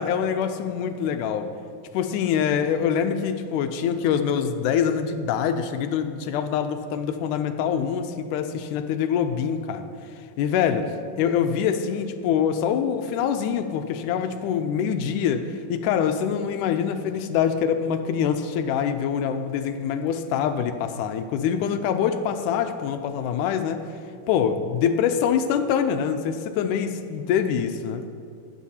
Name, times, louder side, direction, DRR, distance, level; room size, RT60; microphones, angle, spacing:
voice 1, 0.0-1.5 1.9-9.8 10.4-10.9 11.2-23.8 24.3-28.0, left 8 dB, 80° left, 8 dB, 1.9 m, -24 dB
21.0 x 8.2 x 2.8 m, 2.3 s
omnidirectional pair, 4.0 m